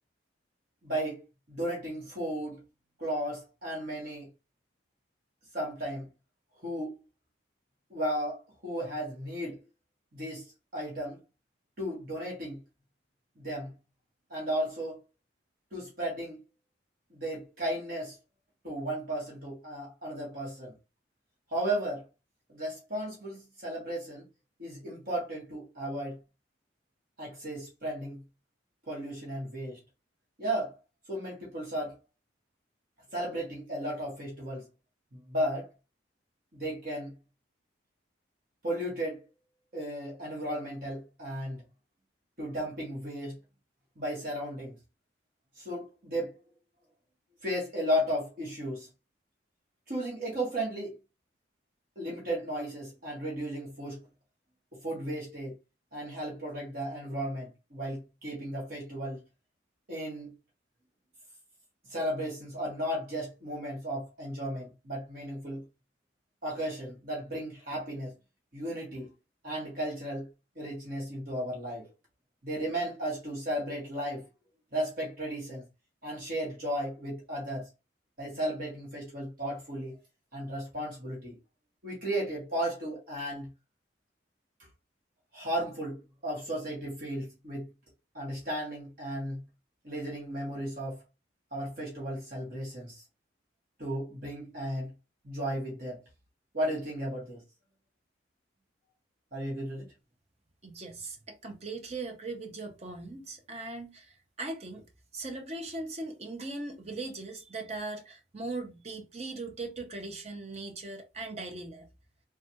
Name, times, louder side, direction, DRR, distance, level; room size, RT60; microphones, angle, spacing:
voice 1, 0.8-1.2 1.5-2.6 3.0-4.3 5.5-6.1 6.6-6.9 7.9-9.6 10.1-11.2 11.8-12.6 13.4-13.7 14.3-15.0 15.7-16.4 17.1-18.2 18.6-20.7 21.5-22.0 22.5-24.3 24.6-26.2 27.2-28.2 28.9-29.8 30.4-30.8 31.1-32.0 33.1-34.6 35.1-35.7 36.5-37.1 38.6-39.2 39.7-41.6 42.4-43.4 44.0-44.8 45.6-46.3 47.4-48.9 49.9-51.0 52.0-54.0 54.7-55.5 55.9-59.2 59.9-60.3 61.9-65.6 66.4-68.1 68.5-69.1 69.4-70.3 70.5-71.9 72.4-74.2 74.7-75.6 76.0-77.7 78.2-80.0 80.3-81.4 81.8-83.5 85.3-87.7 88.1-89.4 89.8-91.0 91.5-93.0 93.8-94.9 95.2-96.0 96.5-97.4 99.3-99.9, right 1 dB, 50° right, 1.2 m, -34 dB
voice 2, 100.6-111.9, right 3 dB, 35° right, 0.6 m, -39 dB
3.2 x 2.3 x 2.8 m
head